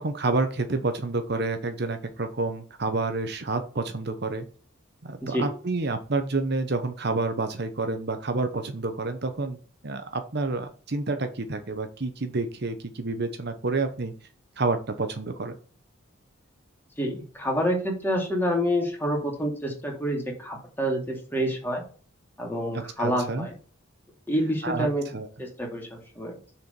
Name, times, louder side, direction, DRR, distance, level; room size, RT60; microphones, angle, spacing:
voice 1, 0.0-4.5 5.0-9.6 9.8-14.1 14.6-15.6 23.0-23.5 24.6-24.9 25.1-25.3, right 3 dB, 55° right, 8 dB, 0.9 m, -29 dB
voice 2, 17.0-21.8 22.4-23.5 24.3-25.1 25.4-26.3, equal, 10° left, -1 dB, 2.5 m, -28 dB
6.8 x 4.5 x 5.2 m, 0.39 s
head